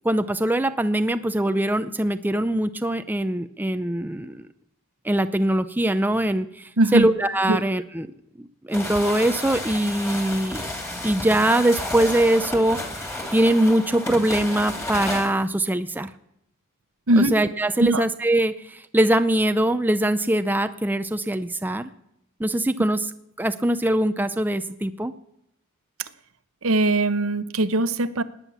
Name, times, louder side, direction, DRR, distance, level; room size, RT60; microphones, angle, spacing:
voice 1, 0.0-4.4 5.0-8.1 8.7-10.6 11.0-16.1 17.2-21.9 22.4-23.1 23.4-25.1, right 1 dB, 10° right, 10 dB, 0.5 m, -22 dB
voice 2, 6.8-7.1 7.5-7.6 17.1-17.3 17.8-18.0 26.0-26.1 26.6-28.2, right 2 dB, 65° right, 13 dB, 0.9 m, -20 dB
sound 1, 8.7-15.3, left 1 dB, 10° left, 2.6 m, -32 dB
18.5 x 9.9 x 7.1 m, 0.78 s
head